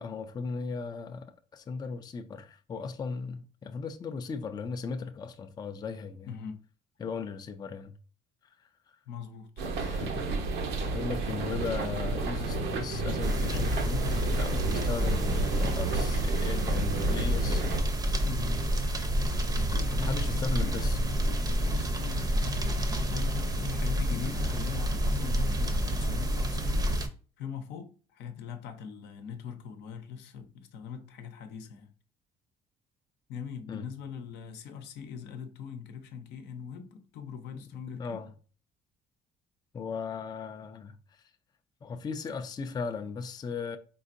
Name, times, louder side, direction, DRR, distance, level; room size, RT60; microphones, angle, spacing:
voice 1, 0.0-6.4 7.0-7.9 8.6-9.0 9.7-10.3 10.8-17.6 20.0-21.0 33.7-33.8 37.9-38.3 39.7-41.2 41.8-43.8, left 5 dB, 25° left, 0.4 m, -37 dB
voice 2, 6.3-6.6 9.1-9.6 18.2-18.7 19.6-20.9 21.6-27.0 27.4-31.9 33.3-38.2, left 7 dB, 80° left, 0.7 m, -41 dB
sound 1, 9.6-17.8, right 3 dB, 80° right, 0.9 m, -31 dB
sound 2, 13.2-27.1, equal, 20° right, 0.6 m, -29 dB
4.2 x 3.8 x 2.5 m
cardioid pair, 110°, 17 cm